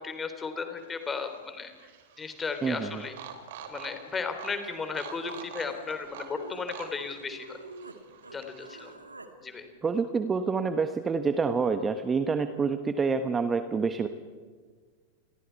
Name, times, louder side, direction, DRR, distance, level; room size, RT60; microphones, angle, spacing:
voice 1, 0.0-1.7 2.2-3.2 3.7-7.6 8.3-9.0 9.4-9.7, left 5 dB, 15° left, 7 dB, 3.5 m, -35 dB
sound 1, 0.8-8.9, right 7 dB, 55° right, 2.8 m, -47 dB
voice 2, 2.6-3.0 9.8-14.1, right 5 dB, 15° right, 10 dB, 1.2 m, -27 dB
Human voice, 4.3-4.4 4.6-8.0 8.2-9.3, right 3 dB, 80° right, 2.2 m, -48 dB
29.0 x 22.5 x 4.6 m, 1.5 s
figure-of-eight pair, 90°, 0 cm